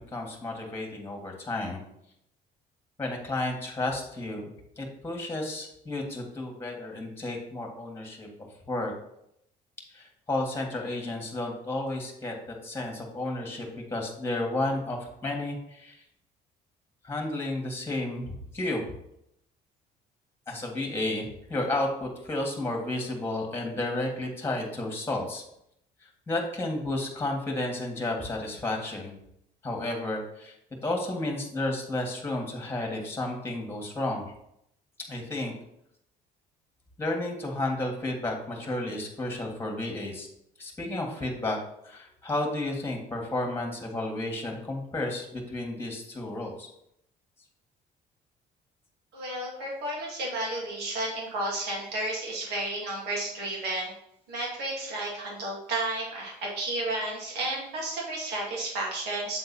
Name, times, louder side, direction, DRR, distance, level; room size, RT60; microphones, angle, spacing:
voice 1, 0.1-1.8 3.0-4.4 4.8-8.3 8.7-8.9 9.9-16.0 17.0-18.8 20.5-25.4 26.0-29.1 29.6-30.5 30.8-34.2 35.1-35.5 37.0-40.3 40.6-41.6 41.8-46.7, left 2 dB, 15° left, 1 dB, 1.8 m, -32 dB
voice 2, 49.1-53.9 54.3-59.4, right 2 dB, 80° right, -3 dB, 2.4 m, -32 dB
7.8 x 3.9 x 4.2 m, 0.76 s
cardioid pair, 110°, 17 cm